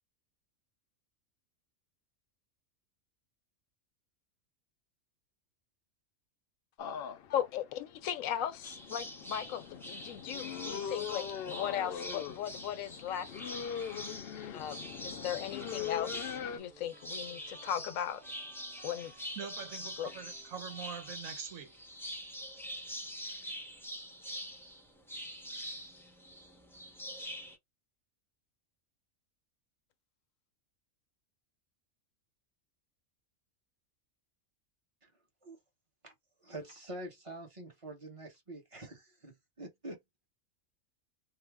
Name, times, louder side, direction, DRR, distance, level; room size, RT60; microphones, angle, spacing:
sound 1, 6.8-16.6, left 8 dB, 65° left, 0.6 m, -41 dB
voice 1, 7.3-13.3 14.4-18.2 18.8-19.1 20.0-20.1, left 10 dB, 80° left, 1.0 m, -37 dB
sound 2, 8.6-27.5, equal, 5° left, 0.4 m, -45 dB
sound 3, 15.0-21.2, right 4 dB, 45° right, 1.3 m, -60 dB
voice 2, 19.4-21.8, right 7 dB, 80° right, 1.2 m, -44 dB
voice 3, 36.4-40.0, right 1 dB, 25° right, 1.0 m, -46 dB
3.3 x 2.0 x 3.4 m
omnidirectional pair, 1.4 m